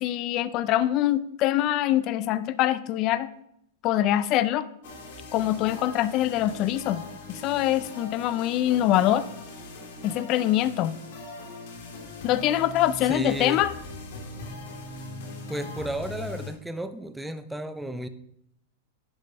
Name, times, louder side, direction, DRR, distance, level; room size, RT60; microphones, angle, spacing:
voice 1, 0.0-3.3 3.8-4.7 5.3-7.0 7.3-9.2 10.0-11.0 12.2-13.7, left 13 dB, 40° left, 15 dB, 0.4 m, -24 dB
sound 1, 4.8-16.5, left 2 dB, 65° left, 2.6 m, -41 dB
voice 2, 13.1-13.6 15.5-18.1, right 1 dB, 5° right, 10 dB, 0.6 m, -32 dB
10.5 x 5.2 x 5.5 m, 0.74 s
supercardioid pair, 145°, 0 cm